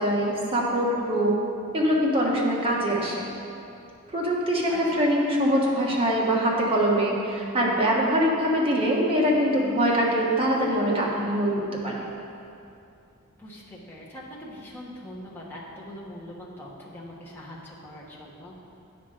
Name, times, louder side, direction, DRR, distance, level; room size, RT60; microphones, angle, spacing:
voice 1, 0.0-1.3 1.7-3.2 4.1-12.1, equal, 25° right, -4 dB, 1.4 m, -23 dB
voice 2, 4.7-5.1 13.4-18.5, left 1 dB, 10° left, -6 dB, 1.2 m, -42 dB
9.3 x 5.8 x 4.9 m, 2.6 s
head